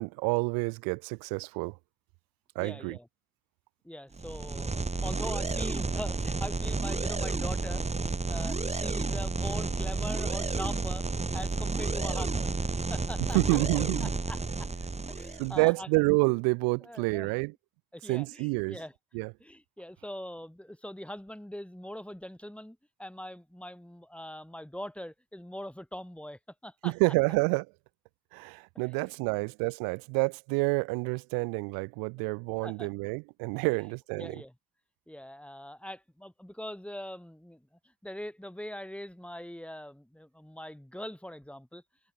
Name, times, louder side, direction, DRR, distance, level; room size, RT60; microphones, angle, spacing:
voice 1, 0.0-1.8 2.5-3.0 13.3-14.1 15.4-17.5 18.1-18.8 19.1-19.3 26.8-27.7 28.3-34.4, right 31 dB, 80° right, 0.8 m, -28 dB
voice 2, 2.6-3.1 3.8-7.9 8.3-13.4 14.0-14.7 15.1-15.9 16.8-17.3 17.9-18.9 19.4-26.9 28.7-29.4 32.6-32.9 34.2-34.5 35.1-37.7 38.0-41.8, left 1 dB, 5° left, 6.0 m, -42 dB
sound 1, 4.1-15.6, right 3 dB, 20° right, 1.7 m, -31 dB
hypercardioid pair, 60°, 35 cm